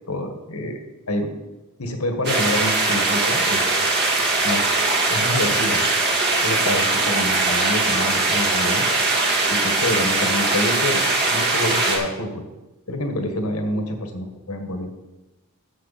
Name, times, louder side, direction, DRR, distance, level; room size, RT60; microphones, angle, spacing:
voice 1, 0.1-0.8 1.1-1.3 1.8-3.8 4.4-5.9 6.4-8.8 9.5-11.0 11.3-12.4 12.9-14.9, left 1 dB, 75° left, 5 dB, 1.6 m, -27 dB
sound 1, 2.2-12.0, right 3 dB, 50° right, 2.1 m, -21 dB
15.0 x 6.1 x 4.2 m, 1.1 s
head